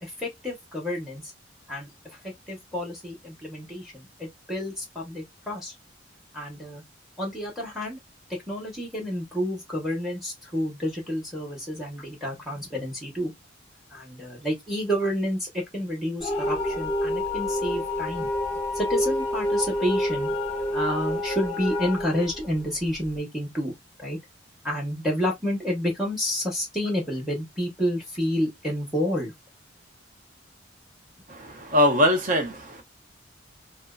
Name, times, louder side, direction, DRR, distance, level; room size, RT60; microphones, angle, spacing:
voice 1, 0.0-1.2 1.7-1.9 2.2-5.7 6.3-6.8 7.2-8.0 8.5-13.3 13.9-18.3 18.7-20.4 20.7-23.7 24.0-24.2 24.6-29.3, equal, ahead, 1.0 m, -29 dB
sound 1, 16.2-23.1, left 1 dB, 35° left, 0.6 m, -28 dB
voice 2, 31.3-32.8, left 1 dB, 45° right, 0.7 m, -22 dB
2.6 x 2.1 x 2.3 m
head